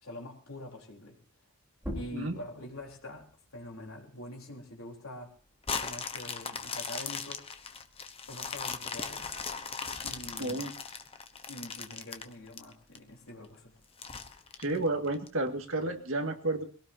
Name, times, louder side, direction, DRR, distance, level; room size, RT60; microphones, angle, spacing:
voice 1, 0.0-1.2 1.9-5.3 5.8-7.5 8.3-9.3 10.0-10.7 11.5-13.7 14.1-14.2, left 1 dB, 75° left, 1 dB, 4.0 m, -45 dB
sound 1, 1.7-7.0 7.4-9.1, equal, 10° right, 4.1 m, -47 dB
sound 2, 5.6-13.0 13.4-13.5 14.0-15.3 15.8-15.9, left 5 dB, 25° left, 1.1 m, -38 dB
voice 2, 10.4-10.7 14.6-16.6, right 2 dB, 65° right, 4 dB, 2.1 m, -31 dB
22.5 x 17.5 x 2.8 m, 0.41 s
head